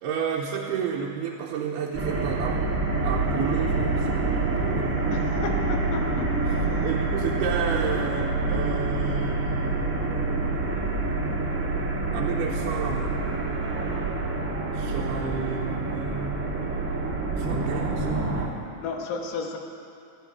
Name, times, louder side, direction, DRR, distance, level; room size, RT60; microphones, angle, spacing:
voice 1, 0.0-2.7 3.0-5.5 6.8-10.7 12.1-13.3 14.7-16.9 17.3-18.4, right 6 dB, 80° right, -2 dB, 2.9 m, -32 dB
sound 1, 1.9-18.5, right 3 dB, 35° right, 1.3 m, -27 dB
voice 2, 5.1-6.9 18.8-19.6, left 4 dB, 80° left, 2 dB, 3.4 m, -33 dB
20.0 x 15.0 x 4.7 m, 2.5 s
omnidirectional pair, 4.6 m